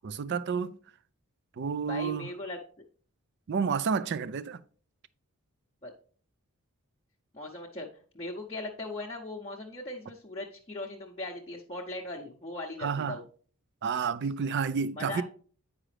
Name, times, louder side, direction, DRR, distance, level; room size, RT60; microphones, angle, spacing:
voice 1, 0.0-0.7 1.6-2.3 3.5-4.6 12.8-13.2 13.8-15.2, right 6 dB, 50° right, 0.4 m, -30 dB
voice 2, 1.9-2.6 5.8-5.9 7.3-7.9 8.1-13.2 15.0-15.2, left 2 dB, 25° left, 0.7 m, -39 dB
8.9 x 4.9 x 3.2 m
head